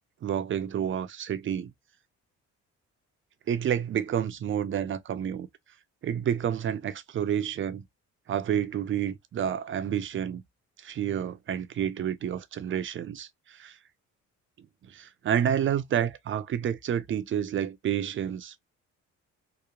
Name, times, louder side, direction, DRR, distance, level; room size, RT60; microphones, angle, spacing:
voice 1, 0.2-1.7 3.5-5.5 6.0-7.8 8.3-10.4 10.8-13.7 14.9-18.6, right 9 dB, 40° right, 0.5 m, -29 dB
2.9 x 2.1 x 2.3 m
cardioid pair, 90°, 30 cm